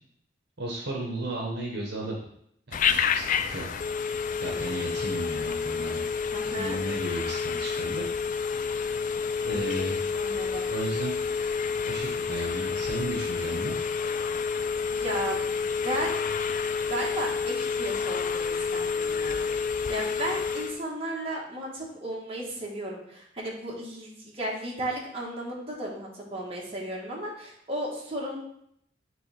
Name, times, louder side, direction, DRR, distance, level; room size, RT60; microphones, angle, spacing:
voice 1, 0.6-2.2 2.7-3.6 4.4-6.0 6.5-8.0 9.4-10.1 10.7-11.1 11.9-13.8, right 2 dB, 60° right, -1 dB, 1.1 m, -34 dB
Telephone, 2.7-20.8, left 5 dB, 45° left, 0.3 m, -29 dB
voice 2, 4.4-4.8 6.3-6.8 10.1-10.7 14.9-15.5 15.8-16.2 16.9-28.4, right 1 dB, 30° right, -3 dB, 1.5 m, -35 dB
9.2 x 3.3 x 3.4 m, 0.70 s
head